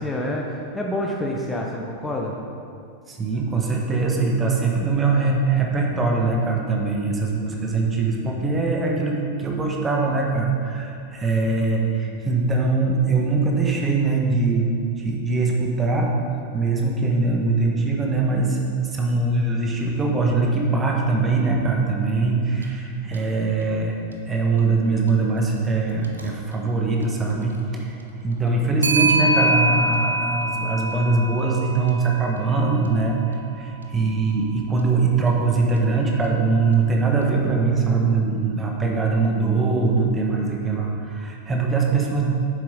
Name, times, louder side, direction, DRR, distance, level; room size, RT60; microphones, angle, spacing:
voice 1, 0.0-2.4, left 1 dB, 10° left, -1 dB, 0.9 m, -27 dB
voice 2, 3.1-16.1 16.5-24.0 24.3-27.9 28.2-42.2, right 3 dB, 20° right, 0 dB, 1.4 m, -22 dB
Clock, 22.6-22.7 23.1-23.2 26.0-26.3 28.8-33.1, right 2 dB, 75° right, 0.8 m, -24 dB
9.9 x 7.5 x 3.9 m, 2.4 s
figure-of-eight pair, 90°, 0 cm